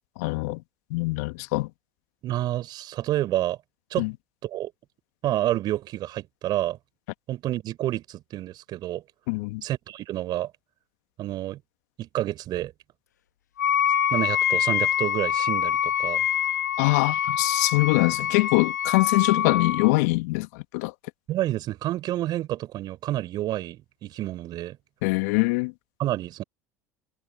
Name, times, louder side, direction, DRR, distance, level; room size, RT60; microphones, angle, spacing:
voice 1, 0.2-0.6 0.9-1.7 4.0-4.1 9.3-9.6 16.8-20.9 25.0-25.7, left 25 dB, 65° left, 1.9 m, -23 dB
voice 2, 2.2-3.6 3.9-4.1 4.4-4.7 5.2-6.8 7.3-9.0 9.6-10.5 11.2-11.6 12.0-12.7 14.1-16.2 21.3-24.8 26.0-26.4, right 14 dB, 50° right, 4.5 m, -29 dB
Wind instrument woodwind instrument, 13.6-19.9, left 10 dB, 85° left, 0.9 m, -25 dB
hypercardioid pair, 70°, 9 cm